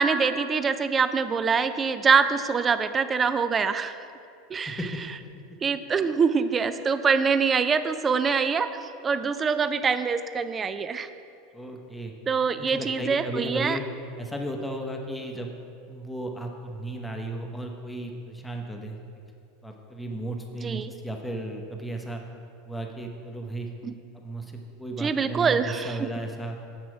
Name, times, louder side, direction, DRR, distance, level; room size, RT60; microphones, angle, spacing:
voice 1, 0.0-4.0 4.5-4.8 5.6-8.7 9.0-11.1 12.3-13.8 20.6-20.9 23.8-23.9 25.0-26.1, right 5 dB, 25° right, 11 dB, 0.4 m, -24 dB
voice 2, 11.5-12.1 12.5-13.8 14.2-15.5 15.9-19.0 19.6-22.2 22.6-23.7 24.1-26.6, right 1 dB, 5° left, 2 dB, 0.9 m, -35 dB
7.1 x 6.0 x 4.7 m, 2.5 s
hypercardioid pair, 85°, 0 cm